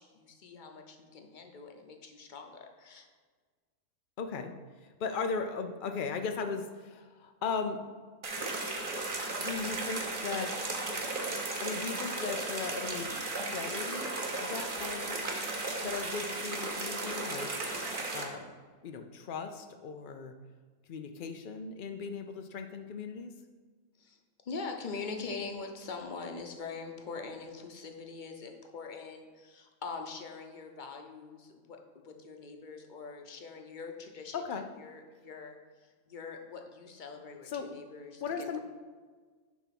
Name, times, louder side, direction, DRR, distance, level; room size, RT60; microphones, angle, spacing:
voice 1, 0.0-3.1 24.0-24.2 24.4-34.4 34.8-35.6 36.1-38.6, left 4 dB, 40° left, 4 dB, 0.7 m, -43 dB
voice 2, 4.2-4.5 5.0-7.8 8.4-8.5 9.4-10.7 11.6-13.1 13.5-15.2 15.8-17.5 18.1-18.5 18.8-20.3 20.9-23.3 34.3-34.7 37.5-37.7 38.2-38.6, left 5 dB, 90° left, 6 dB, 0.4 m, -37 dB
sound 1, 8.2-18.2, right 2 dB, 40° right, 1.1 m, -35 dB
10.0 x 3.5 x 5.8 m, 1.5 s
omnidirectional pair, 1.6 m